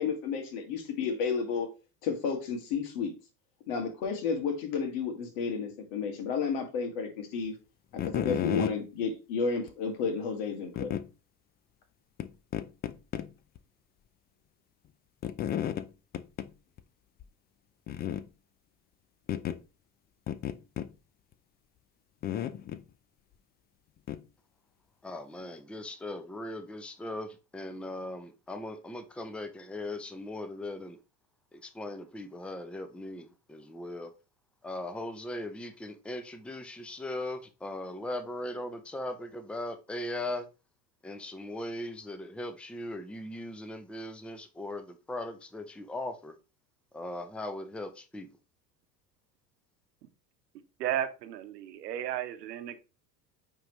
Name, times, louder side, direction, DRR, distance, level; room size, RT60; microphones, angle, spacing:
voice 1, 0.0-1.7 2.0-3.1 3.7-7.5 7.9-10.9, left 5 dB, 65° left, 2.0 m, -32 dB
sound 1, 7.9-8.8 9.7-9.8 10.8-11.0 12.2-12.3 12.5-13.3 13.6-13.7 15.2-15.9 16.1-16.5 16.8-16.9 17.2-17.3 17.9-18.3 19.3-19.6 20.3-20.9 22.2-22.8 24.1-24.2, left 10 dB, 20° left, 0.3 m, -32 dB
voice 2, 25.0-31.0 31.5-34.1 34.6-40.5 41.0-46.4 46.9-48.3, left 1 dB, ahead, 0.7 m, -39 dB
voice 3, 50.8-52.8, right 11 dB, 75° right, 1.0 m, -34 dB
8.9 x 3.7 x 3.1 m
hypercardioid pair, 75°, 50 cm